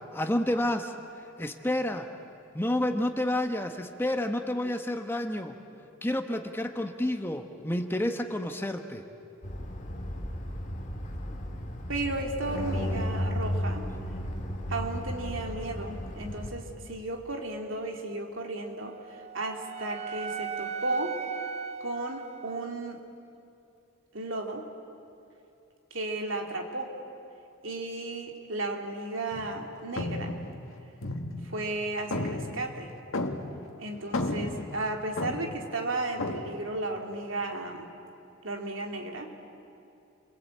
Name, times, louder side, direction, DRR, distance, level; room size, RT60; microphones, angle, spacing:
voice 1, 0.1-0.9 1.4-2.1 2.5-5.6 6.0-9.0, left 1 dB, 10° left, 6 dB, 1.1 m, -29 dB
sound 1, 9.4-16.5, equal, 35° left, 2.4 m, -34 dB
voice 2, 11.9-13.9 14.7-21.2 21.8-23.0 24.1-24.6 25.9-26.9 27.6-30.3 31.4-32.9 33.8-37.9 38.4-39.3, right 2 dB, 70° right, 2 dB, 2.9 m, -34 dB
Wind instrument woodwind instrument, 18.8-23.0, right 6 dB, 30° right, 0.7 m, -38 dB
sound 2, 29.3-29.6 30.0-31.7 32.1-33.7 34.0-35.7 36.2-36.5, left 2 dB, 80° left, 1.9 m, -33 dB
29.0 x 22.0 x 8.5 m, 2.7 s
head